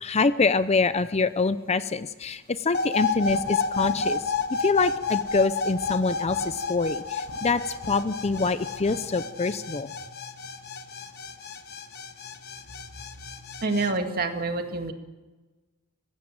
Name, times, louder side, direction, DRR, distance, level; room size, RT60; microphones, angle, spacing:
voice 1, 0.0-7.6 7.9-9.9, left 4 dB, 30° left, 13 dB, 0.6 m, -25 dB
sound 1, 2.7-13.9, left 4 dB, 45° left, 1.4 m, -31 dB
sound 2, 3.1-9.3, equal, 80° left, 5.3 m, -47 dB
voice 2, 13.6-14.9, right 3 dB, 45° right, 5 dB, 2.1 m, -27 dB
22.0 x 16.0 x 7.6 m, 1.2 s
head